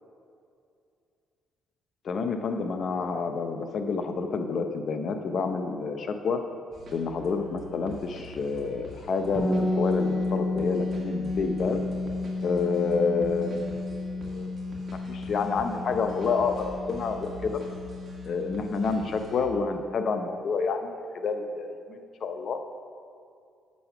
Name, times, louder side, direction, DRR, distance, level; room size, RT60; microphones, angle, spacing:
voice 1, 2.0-6.4 6.9-11.8 12.4-13.9 14.2-14.5 14.9-17.6 18.2-22.6, left 4 dB, 60° left, 7 dB, 0.6 m, -29 dB
sound 1, 6.7-19.5, left 1 dB, 45° right, 1.6 m, -45 dB
sound 2, 9.4-19.1, left 2 dB, 25° left, 0.9 m, -32 dB
6.7 x 6.3 x 5.8 m, 2.4 s
cardioid pair, 90°, 0 cm